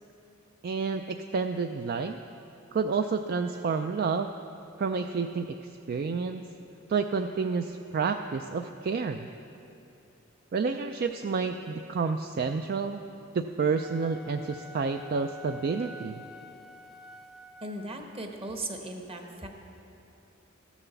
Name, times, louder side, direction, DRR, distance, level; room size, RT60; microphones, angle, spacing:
voice 1, 0.6-2.2 2.7-4.4 4.8-6.4 6.9-9.3 10.5-13.0 13.3-16.2, right 5 dB, 50° right, 7 dB, 0.4 m, -29 dB
Wind instrument woodwind instrument, 13.7-18.0, equal, ahead, 0.6 m, -48 dB
voice 2, 17.6-19.5, right 1 dB, 30° right, 3 dB, 1.1 m, -37 dB
13.5 x 7.1 x 7.0 m, 2.8 s
head